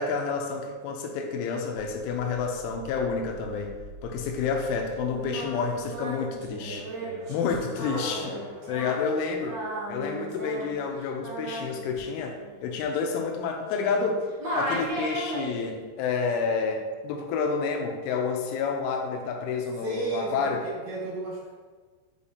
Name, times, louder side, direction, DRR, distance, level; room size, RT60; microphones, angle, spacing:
voice 1, 0.0-3.8 4.0-6.9 7.3-8.4 8.7-9.6 9.9-20.6, left 5 dB, 85° left, 3 dB, 3.1 m, -29 dB
sound 1, 1.7-6.6, right 3 dB, 90° right, 2.0 m, -48 dB
Singing, 5.1-14.1 14.4-15.8, right 1 dB, 50° right, 1.7 m, -36 dB
voice 2, 6.6-7.2 8.1-8.4 19.8-21.5, right 3 dB, 70° right, -7 dB, 4.2 m, -35 dB
sound 2, 7.1-10.2, left 2 dB, 60° left, 3.2 m, -43 dB
8.2 x 5.0 x 2.8 m, 1.4 s
omnidirectional pair, 5.6 m